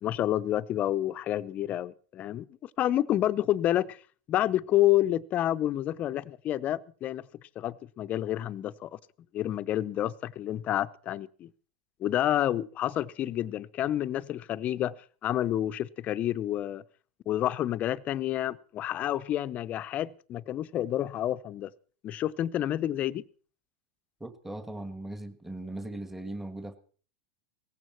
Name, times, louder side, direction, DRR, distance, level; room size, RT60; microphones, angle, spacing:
voice 1, 0.0-4.0 4.3-7.2 7.6-9.0 9.3-11.5 12.0-14.9 15.2-16.8 17.3-21.7 22.0-23.2, left 12 dB, 40° left, 0.7 m, -29 dB
voice 2, 24.2-26.8, right 1 dB, 5° right, 1.6 m, -39 dB
18.0 x 15.5 x 4.5 m
hypercardioid pair, 100°, 4 cm